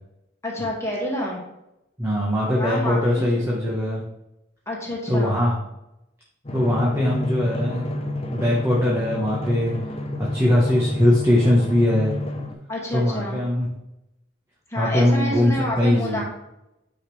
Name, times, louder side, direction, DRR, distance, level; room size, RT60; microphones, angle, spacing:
voice 1, 0.4-1.4 2.6-3.5 4.7-5.4 12.7-13.4 14.7-16.2, left 1 dB, 15° left, -3 dB, 2.1 m, -28 dB
voice 2, 2.0-4.0 5.1-5.5 6.5-7.9 8.3-9.7 10.2-12.2 12.9-13.7 14.8-16.2, left 1 dB, 15° right, -4 dB, 1.2 m, -21 dB
Drum, 6.4-12.5, left 1 dB, 30° left, 0.8 m, -30 dB
9.0 x 5.1 x 3.3 m, 0.88 s
head